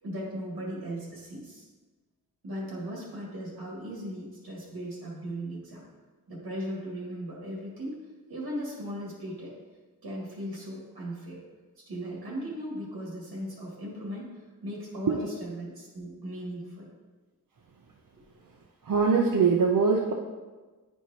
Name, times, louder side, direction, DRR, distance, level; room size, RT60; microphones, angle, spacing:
voice 1, 0.0-1.7 2.4-5.8 6.3-8.0 8.3-9.6 10.0-11.4 11.8-16.9, equal, 85° right, -4 dB, 2.0 m, -37 dB
voice 2, 18.8-20.1, right 5 dB, 60° right, 0 dB, 0.6 m, -22 dB
10.0 x 4.5 x 2.9 m, 1.3 s
wide cardioid pair, 120°, 37 cm